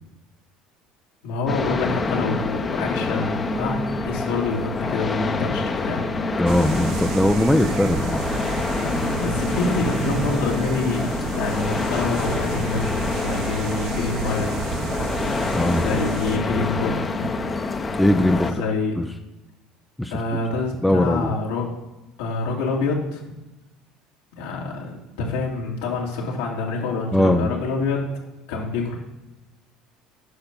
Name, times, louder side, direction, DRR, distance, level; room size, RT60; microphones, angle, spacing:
voice 1, 1.2-6.0 9.0-12.9 13.2-14.5 15.7-17.3 18.4-19.0 20.1-21.7 22.2-23.2 24.3-28.0 28.5-28.9, left 3 dB, 85° left, -2 dB, 2.4 m, -27 dB
sound 1, 1.5-18.5, left 3 dB, 25° left, 0.9 m, -26 dB
voice 2, 6.4-8.2 15.5-15.8 18.0-18.5 20.0-20.1 20.8-21.3 27.1-27.5, left 1 dB, 5° left, 4 dB, 0.5 m, -19 dB
sound 2, 6.5-16.4, right 6 dB, 65° right, 0.8 m, -31 dB
8.5 x 5.7 x 5.4 m, 1.0 s
supercardioid pair, 100°, 0 cm